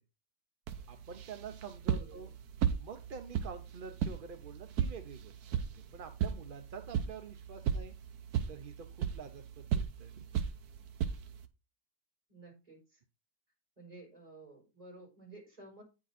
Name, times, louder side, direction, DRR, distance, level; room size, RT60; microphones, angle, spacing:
sound 1, 0.7-11.5, right 8 dB, 70° right, 1.3 m, -36 dB
voice 1, 0.9-2.3 2.8-5.6 5.9-8.0 8.5-10.1, right 6 dB, 55° right, 7 dB, 0.6 m, -47 dB
voice 2, 1.8-2.3 12.3-13.0 13.8-15.8, right 2 dB, 20° right, -2 dB, 4.9 m, -53 dB
9.1 x 5.1 x 4.1 m, 0.29 s
omnidirectional pair, 1.7 m